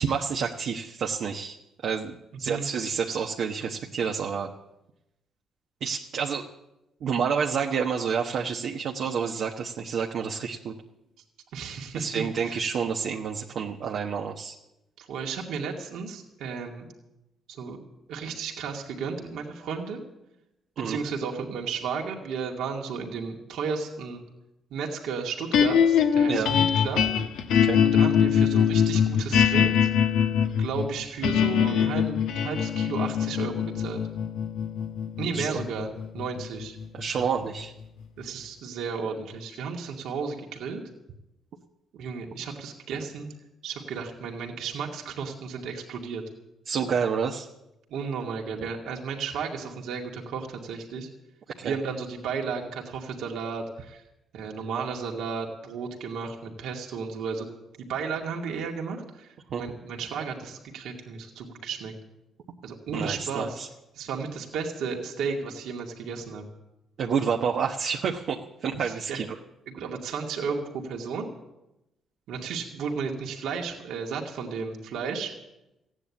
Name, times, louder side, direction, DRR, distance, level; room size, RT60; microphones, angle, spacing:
voice 1, 0.0-1.6 1.8-4.5 5.8-6.5 7.0-10.7 11.9-14.6 20.8-21.0 26.3-26.5 27.5-27.8 35.3-35.6 36.9-37.7 46.7-47.5 51.6-51.8 59.5-59.6 62.9-63.7 67.0-69.4, right 6 dB, 65° right, 1 dB, 1.2 m, -29 dB
voice 2, 11.5-12.6 15.0-16.9 17.5-17.8 18.1-20.0 20.8-24.2 24.7-27.0 27.9-29.9 30.6-34.0 35.2-36.8 38.2-40.8 41.9-43.3 43.6-46.2 47.9-51.1 51.6-54.0 54.3-57.5 57.8-61.9 62.6-63.6 64.0-66.4 68.8-69.2 69.7-71.3 72.3-75.3, right 5 dB, 85° right, 0 dB, 2.3 m, -33 dB
sound 1, 25.5-37.8, left 8 dB, 90° left, 1.2 m, -23 dB
15.5 x 9.9 x 8.5 m, 0.92 s
cardioid pair, 90°, 0 cm